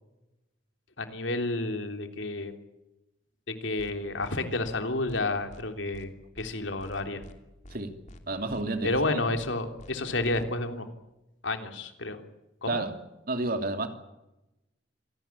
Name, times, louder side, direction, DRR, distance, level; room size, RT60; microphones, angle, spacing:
voice 1, 1.0-2.6 3.6-6.1 6.4-7.2 8.8-10.9 11.4-12.2 12.6-12.8, left 2 dB, 85° left, 3.4 m, -30 dB
sound 1, 3.8-3.9 4.2-4.4 4.6-4.8 5.1-5.2 5.5-5.6 5.9-6.1 6.3-6.5 6.8-7.4 7.6-7.8 8.1-8.2 8.5-8.6 8.9-9.1 9.3-9.5 9.8-9.9 10.2-10.4, left 1 dB, 40° left, 2.8 m, -48 dB
voice 2, 8.3-9.0 12.7-12.9 13.3-13.9, right 2 dB, 50° right, 2.9 m, -30 dB
26.0 x 18.5 x 8.6 m
head